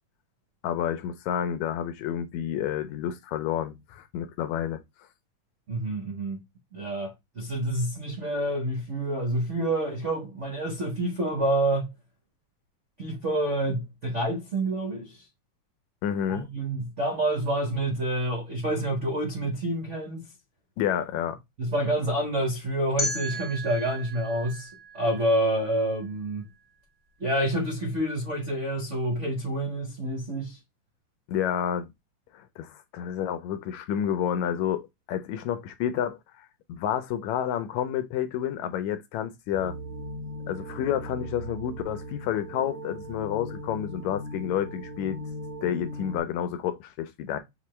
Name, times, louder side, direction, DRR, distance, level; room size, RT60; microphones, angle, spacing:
voice 1, 0.6-4.8 16.0-16.5 20.8-21.4 31.3-31.9 32.3-39.7 40.5-45.2 45.6-47.4, left 10 dB, 75° left, 1.9 m, -30 dB
voice 2, 5.7-6.4 6.7-11.9 13.0-15.2 16.3-20.2 21.6-24.7 24.9-26.4 27.2-30.6, right 1 dB, 85° right, 0.6 m, -28 dB
sound 1, 23.0-25.9, equal, 40° left, 0.4 m, -35 dB
sound 2, 39.5-46.2, equal, 70° right, 1.3 m, -38 dB
6.0 x 2.6 x 3.1 m
omnidirectional pair, 3.5 m